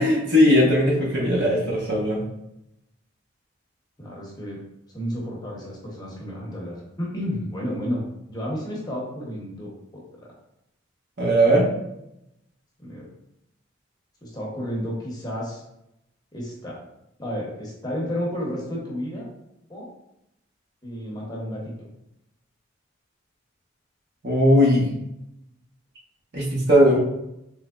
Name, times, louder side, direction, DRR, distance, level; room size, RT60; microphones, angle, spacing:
voice 1, 0.0-2.2 11.2-11.7 24.2-24.9 26.3-27.0, equal, 55° right, -4 dB, 1.0 m, -18 dB
voice 2, 4.0-4.6 4.9-8.0 8.3-10.3 12.8-13.1 14.2-15.6 16.3-16.8 17.2-19.3 19.7-19.9 20.8-21.9, equal, 20° left, -4 dB, 0.7 m, -32 dB
3.7 x 3.0 x 2.3 m, 0.84 s
head